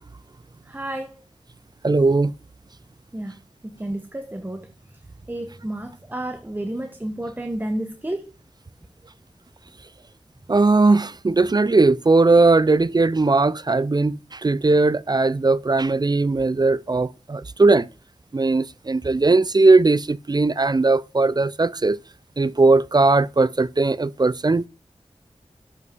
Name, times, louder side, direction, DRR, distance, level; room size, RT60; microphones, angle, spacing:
voice 1, 0.7-1.1 3.1-3.4 3.6-4.7 5.3-8.2, right 1 dB, 15° right, 1.0 m, -31 dB
voice 2, 1.8-2.3 10.5-17.9 18.3-22.0 22.4-24.7, right 3 dB, 35° right, 0.4 m, -18 dB
7.8 x 6.2 x 4.5 m
wide cardioid pair, 65°, 12 cm